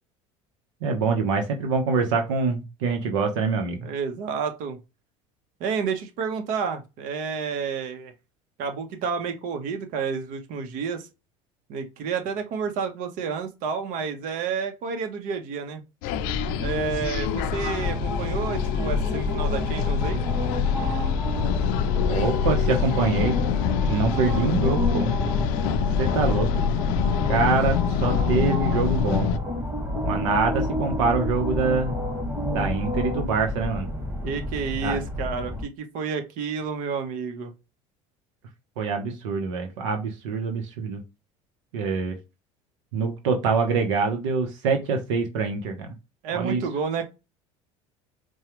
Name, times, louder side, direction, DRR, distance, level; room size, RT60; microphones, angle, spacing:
voice 1, 0.8-3.9 22.1-23.4 23.9-25.1 26.0-26.5 27.3-29.4 30.0-32.0 32.5-33.9 34.8-35.0 38.8-41.0 41.7-42.2 42.9-45.9 46.3-46.6, right 4 dB, 85° right, 0.8 m, -25 dB
voice 2, 3.8-4.8 5.6-8.1 8.6-11.1 11.7-15.8 16.6-20.2 34.2-37.5 46.2-47.1, right 6 dB, 65° right, 1.0 m, -30 dB
sound 1, 16.0-29.4, left 8 dB, 70° left, 0.5 m, -26 dB
sound 2, 16.1-35.6, left 1 dB, 15° right, 1.8 m, -30 dB
sound 3, 20.8-28.5, left 5 dB, 20° left, 0.6 m, -32 dB
4.6 x 2.3 x 2.9 m
supercardioid pair, 90°, 15 cm